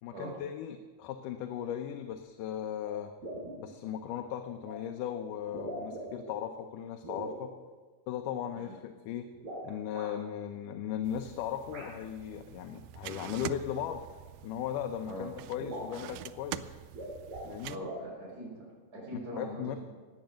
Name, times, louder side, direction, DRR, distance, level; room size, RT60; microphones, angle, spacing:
voice 1, 0.0-3.1 3.6-7.5 8.1-9.3 9.6-14.0 14.4-16.8 17.5-17.8 19.4-19.8, left 10 dB, 80° left, 6 dB, 2.3 m, -37 dB
sound 1, 2.8-2.9 3.2-3.6 4.6-4.8 5.4-6.3 7.0-7.4 9.3-10.1 11.7-11.9 13.1-13.3 14.5-14.6 14.9-15.0 15.3-15.4 15.6-16.0 16.8-17.5 17.8-18.1, right 1 dB, 60° right, 6.1 m, -41 dB
sound 2, 11.0-17.8, right 13 dB, 80° right, 1.6 m, -45 dB
voice 2, 17.7-18.7 18.9-19.8, equal, 30° right, -4 dB, 5.6 m, -41 dB
16.0 x 9.4 x 6.3 m, 1.4 s
omnidirectional pair, 3.7 m